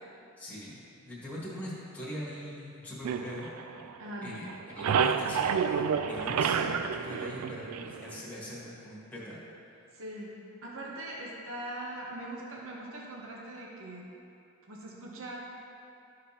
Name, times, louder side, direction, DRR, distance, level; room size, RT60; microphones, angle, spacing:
voice 1, 0.4-0.8 1.0-3.5 3.8-3.9 4.2-9.4, left 1 dB, 5° left, -9 dB, 1.6 m, -42 dB
sound 1, 3.0-4.2 4.5-8.2, right 6 dB, 85° right, 0.3 m, -29 dB
voice 2, 4.0-4.4 9.9-10.3 10.6-14.1 14.7-15.4, right 1 dB, 60° right, -3 dB, 0.9 m, -41 dB
13.0 x 5.0 x 2.9 m, 2.7 s
head